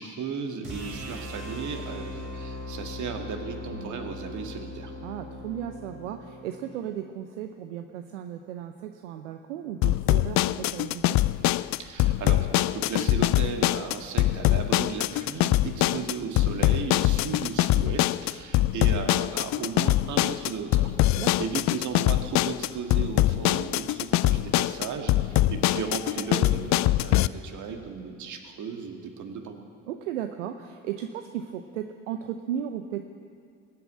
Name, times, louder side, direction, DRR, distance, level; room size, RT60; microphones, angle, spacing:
voice 1, 0.0-4.9 11.8-29.6, right 6 dB, 55° right, 4 dB, 2.1 m, -35 dB
sound 1, 0.6-6.8, left 1 dB, 35° right, 4.2 m, -39 dB
voice 2, 5.0-11.2 15.7-16.1 21.1-21.5 25.4-25.6 29.9-33.0, right 10 dB, 80° right, 7 dB, 0.7 m, -35 dB
sound 2, 9.8-27.3, left 16 dB, 50° left, 0.5 m, -23 dB
20.0 x 8.5 x 8.6 m, 2.3 s
hypercardioid pair, 55°, 36 cm